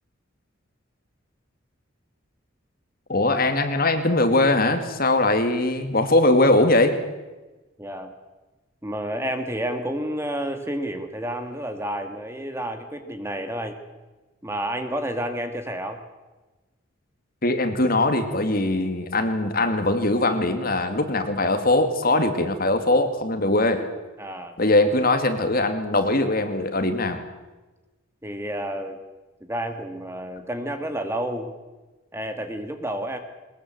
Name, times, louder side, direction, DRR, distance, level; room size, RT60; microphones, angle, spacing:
voice 1, 3.1-7.0 17.4-23.8 24.6-27.2, left 2 dB, 45° left, 8 dB, 2.2 m, -21 dB
voice 2, 7.8-8.1 8.8-13.8 14.4-16.0 24.2-24.6 28.2-29.0 29.4-31.5 32.1-33.2, right 1 dB, 10° right, 7 dB, 1.8 m, -30 dB
21.5 x 20.5 x 7.8 m, 1.2 s
head